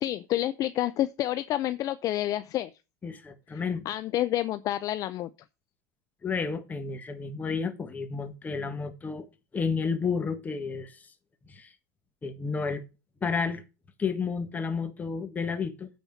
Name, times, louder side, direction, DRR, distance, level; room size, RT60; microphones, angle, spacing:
voice 1, 0.0-2.7 3.5-5.3, left 13 dB, 40° left, 0.5 m, -29 dB
voice 2, 3.0-3.8 6.2-9.3 9.5-11.1 11.5-11.7 12.2-12.8 13.2-13.6 14.0-16.0, left 5 dB, 20° left, 1.5 m, -31 dB
9.1 x 4.4 x 7.0 m
supercardioid pair, 125°, 9 cm